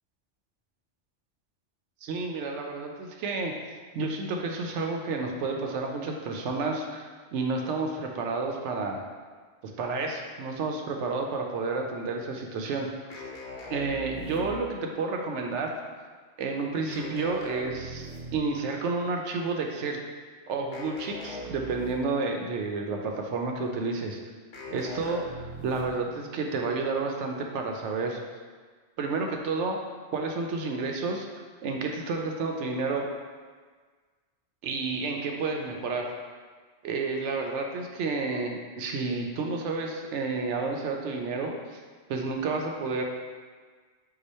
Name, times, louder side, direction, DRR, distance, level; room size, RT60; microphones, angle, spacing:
voice 1, 2.0-3.5 3.9-7.1 7.3-9.0 9.6-12.9 13.7-15.7 16.4-20.0 20.5-24.2 24.7-28.2 29.0-29.8 30.1-31.3 31.6-33.1 34.6-36.1 36.8-41.8 42.1-43.0, right 3 dB, 85° right, 2 dB, 0.9 m, -30 dB
sound 1, 13.1-14.9 16.9-18.6 20.7-22.3 24.5-26.1, equal, 70° left, 1.0 m, -41 dB
4.8 x 2.2 x 4.1 m, 1.5 s
omnidirectional pair, 1.2 m